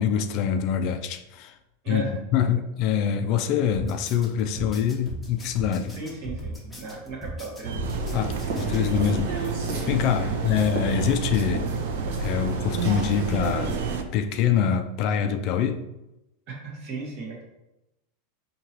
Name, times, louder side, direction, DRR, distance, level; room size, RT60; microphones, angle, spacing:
voice 1, 0.0-1.6 1.9-2.0 2.3-6.0 8.1-9.5 9.9-11.7 12.2-13.8 14.1-15.8, left 8 dB, 45° left, 7 dB, 0.3 m, -25 dB
sound 1, 3.7-9.0, right 1 dB, 5° left, 0.9 m, -38 dB
voice 2, 5.9-7.9 10.3-10.4 16.5-17.4, right 3 dB, 45° right, -1 dB, 1.2 m, -36 dB
sound 2, 7.6-14.0, right 4 dB, 90° right, 0.3 m, -31 dB
sound 3, 7.8-14.0, right 4 dB, 65° right, 1.0 m, -32 dB
4.5 x 2.8 x 2.9 m, 0.91 s
supercardioid pair, 150°, 0 cm